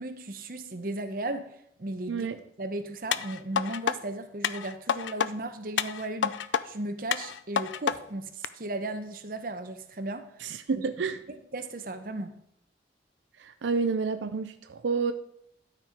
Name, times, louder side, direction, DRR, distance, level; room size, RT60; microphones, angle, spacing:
voice 1, 0.0-1.5 1.8-2.3 2.6-6.4 6.6-10.3 10.7-10.8 11.3-12.4, right 2 dB, 50° right, 8 dB, 0.8 m, -36 dB
sound 1, 3.1-4.0 4.4-5.3 5.8-6.6 7.1-8.0 8.4-8.5, left 8 dB, 90° left, 0.4 m, -28 dB
voice 2, 10.4-11.2 13.4-15.1, right 5 dB, 90° right, 10 dB, 0.5 m, -29 dB
12.0 x 4.6 x 5.1 m, 0.73 s
head